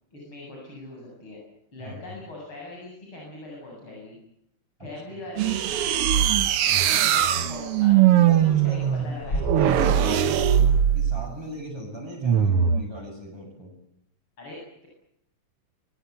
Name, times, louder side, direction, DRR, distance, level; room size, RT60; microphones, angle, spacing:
voice 1, 0.1-1.4 1.7-4.2 4.8-5.5 6.8-9.6 9.9-10.3 14.4-14.9, left 2 dB, 65° left, -2 dB, 8.8 m, -41 dB
voice 2, 1.8-2.2 4.8-5.3 8.1-10.3 10.9-13.7, equal, 10° right, -3 dB, 7.5 m, -40 dB
sound 1, 5.4-10.8, left 1 dB, 50° left, 4.6 m, -38 dB
sound 2, 5.4-11.3 12.2-12.9, right 9 dB, 90° right, 2.1 m, -21 dB
25.0 x 22.0 x 8.3 m, 0.78 s
omnidirectional pair, 2.4 m